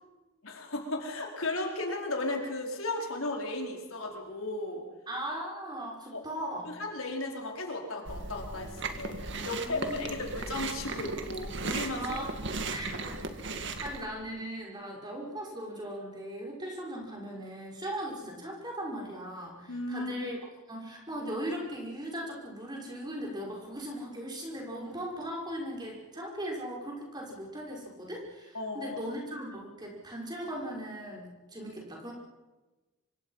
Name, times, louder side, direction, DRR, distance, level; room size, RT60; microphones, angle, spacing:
voice 1, 0.4-4.8 6.1-6.2 6.7-12.2 19.7-20.3 28.5-29.0, left 2 dB, 75° left, 1 dB, 4.6 m, -35 dB
voice 2, 5.1-6.7 9.5-10.1 11.9-12.3 12.7-13.2 13.8-20.4 20.7-32.1, right 1 dB, 20° right, -1 dB, 5.6 m, -38 dB
Chewing mastication, 8.1-14.1, right 3 dB, 55° right, 2.0 m, -37 dB
26.0 x 24.0 x 5.8 m, 1.1 s
head